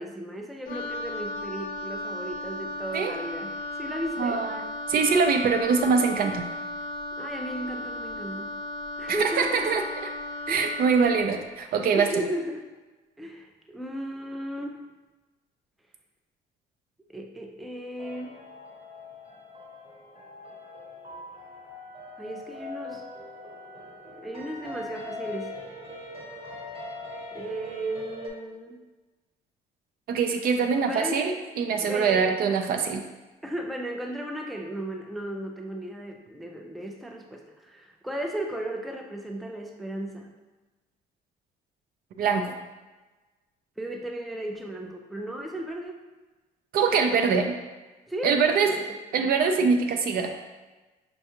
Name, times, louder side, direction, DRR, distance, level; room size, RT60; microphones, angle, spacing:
voice 1, 0.0-4.5 7.2-8.5 9.0-9.8 10.5-10.8 11.9-12.7 13.2-14.9 17.1-18.4 22.2-23.1 24.2-25.5 27.3-28.8 30.9-31.3 31.7-32.3 33.4-40.3 43.8-46.0 48.1-49.0, right 1 dB, ahead, 2 dB, 0.3 m, -35 dB
Wind instrument woodwind instrument, 0.7-11.3, left 1 dB, 55° left, 0.5 m, -35 dB
voice 2, 4.2-4.6 4.9-6.4 9.4-9.8 10.5-12.1 30.1-33.0 42.2-42.6 46.7-47.5 48.2-48.7 49.1-50.3, right 5 dB, 60° right, 5 dB, 0.5 m, -23 dB
sound 1, 18.0-28.3, left 2 dB, 35° right, 1.0 m, -41 dB
5.2 x 2.3 x 2.9 m, 1.2 s
cardioid pair, 110°, 17 cm